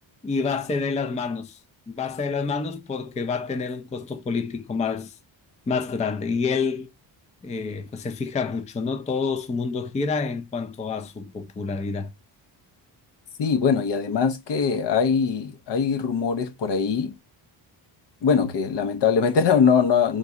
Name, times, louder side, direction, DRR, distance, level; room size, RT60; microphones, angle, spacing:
voice 1, 0.2-1.6 1.9-5.1 5.7-6.9 7.4-12.1, left 4 dB, 15° left, 0.4 m, -28 dB
voice 2, 13.4-17.1 18.2-20.2, left 6 dB, 65° left, 0.9 m, -22 dB
3.8 x 2.7 x 4.7 m
cardioid pair, 105°, 46 cm